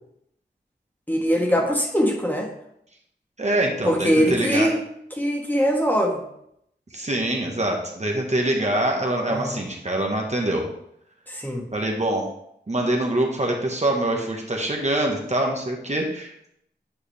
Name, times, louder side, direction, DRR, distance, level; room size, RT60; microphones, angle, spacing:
voice 1, 1.1-2.5 3.8-4.8 5.1-6.2 9.3-9.6 11.3-11.7, equal, 10° left, 0 dB, 1.5 m, -22 dB
voice 2, 3.4-4.7 6.9-10.7 11.7-12.2 12.7-16.5, right 1 dB, 40° right, 0 dB, 1.3 m, -24 dB
9.3 x 4.8 x 3.4 m, 0.74 s
wide cardioid pair, 70°, 19 cm